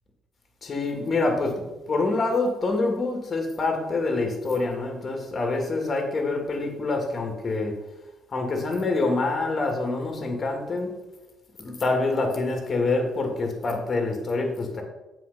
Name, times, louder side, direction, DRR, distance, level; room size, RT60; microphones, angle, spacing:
voice 1, 0.6-7.8 8.3-11.0 11.6-14.8, left 3 dB, 40° left, 2.4 m, -26 dB
7.7 x 4.9 x 6.9 m
cardioid pair, 85°, 0 cm